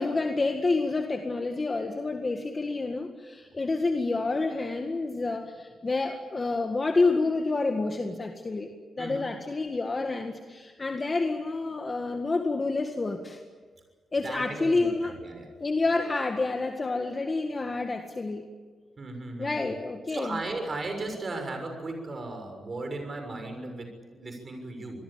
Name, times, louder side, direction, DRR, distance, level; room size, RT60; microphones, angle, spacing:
voice 1, 0.0-8.7 9.0-13.4 14.1-15.1 15.6-18.5 19.4-20.4, left 3 dB, 25° left, 4 dB, 1.9 m, -28 dB
voice 2, 14.2-15.5 19.0-19.7 20.1-25.0, right 2 dB, 35° right, 5 dB, 6.6 m, -36 dB
26.5 x 21.0 x 8.9 m, 1.4 s
cardioid pair, 120°, 0 cm